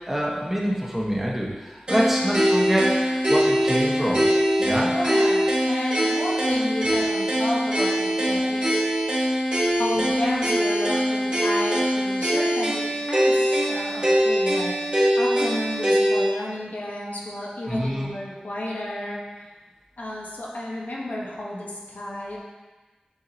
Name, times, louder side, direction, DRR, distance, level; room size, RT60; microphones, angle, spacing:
voice 1, 0.1-2.9 3.3-4.2 4.6-4.9 17.7-18.1, equal, 10° right, -5 dB, 1.4 m, -25 dB
sound 1, 1.9-16.3, equal, 35° right, 1.8 m, -22 dB
voice 2, 4.9-9.3 9.8-19.2 20.0-22.4, left 1 dB, 85° left, -4 dB, 1.2 m, -32 dB
7.3 x 5.7 x 2.9 m, 1.3 s
wide cardioid pair, 50°, 3 cm